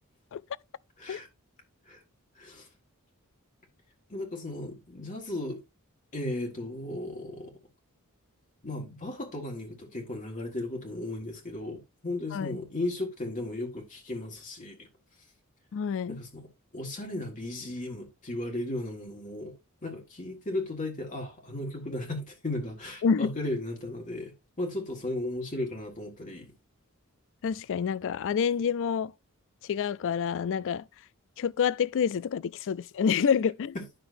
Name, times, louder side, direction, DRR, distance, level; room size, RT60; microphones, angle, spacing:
voice 1, 2.4-2.7 4.1-5.6 6.1-7.5 8.6-14.9 16.1-16.5 16.7-19.6 19.8-26.5 33.8-33.9, left 1 dB, 35° left, 1.6 m, -35 dB
voice 2, 15.7-16.2 23.0-23.3 27.4-29.1 29.7-30.9 31.4-33.8, left 7 dB, 60° left, 0.4 m, -27 dB
10.5 x 5.9 x 2.6 m
head